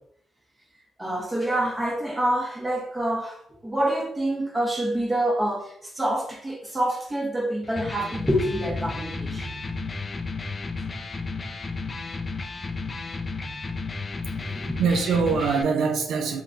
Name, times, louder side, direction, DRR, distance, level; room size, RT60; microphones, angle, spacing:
voice 1, 1.0-9.6 14.3-14.8, right 1 dB, 15° right, -2 dB, 0.9 m, -27 dB
Electric guitar, 7.6-15.6, left 3 dB, 30° left, 0.3 m, -33 dB
voice 2, 14.2-16.4, right 5 dB, 75° right, 4 dB, 0.4 m, -24 dB
3.7 x 2.2 x 2.6 m, 0.71 s
cardioid pair, 90°, 0 cm